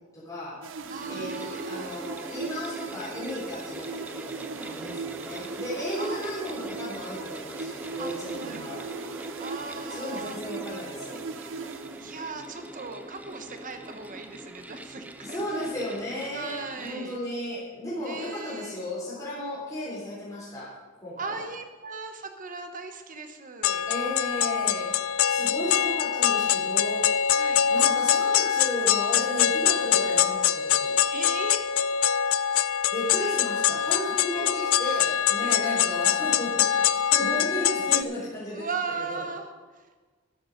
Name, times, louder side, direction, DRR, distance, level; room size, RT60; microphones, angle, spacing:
voice 1, 0.1-0.5 1.1-4.4 4.7-8.9 9.9-11.2 15.2-20.7 21.0-21.4 23.9-24.9 25.3-27.1 27.7-31.0 32.9-38.7 39.1-39.2, left 1 dB, 15° left, -9 dB, 3.6 m, -34 dB
sound 1, 0.6-12.5, right 5 dB, 65° right, 0.6 m, -39 dB
sound 2, 0.7-16.9, right 1 dB, 5° right, 0.5 m, -42 dB
voice 2, 0.9-1.9 4.8-5.0 6.0-6.2 8.0-8.1 8.4-8.8 9.4-10.4 12.0-15.4 16.3-17.2 18.0-18.8 21.2-23.9 27.3-27.6 31.1-31.7 34.1-34.5 35.4-35.8 38.5-39.8, right 4 dB, 40° right, 6 dB, 1.2 m, -38 dB
sound 3, 23.6-38.0, left 9 dB, 85° left, 0.4 m, -24 dB
12.5 x 10.0 x 5.2 m, 1.4 s
head